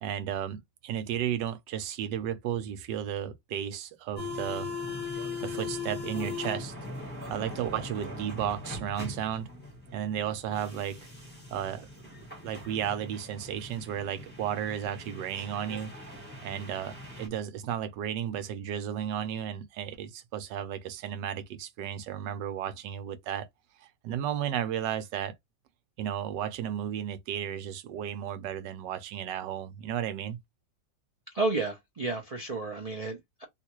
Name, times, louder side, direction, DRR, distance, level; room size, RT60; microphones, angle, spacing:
voice 1, 0.0-4.7 5.4-6.7 7.3-9.5 9.9-11.1 11.5-11.9 12.4-15.9 16.4-23.4 24.0-25.3 26.0-30.4, right 9 dB, 80° right, 1.3 m, -33 dB
sound 1, 4.2-17.3, left 3 dB, 10° left, 0.9 m, -40 dB
voice 2, 31.3-33.4, right 3 dB, 65° right, 0.3 m, -31 dB
3.5 x 2.4 x 3.0 m
omnidirectional pair, 1.9 m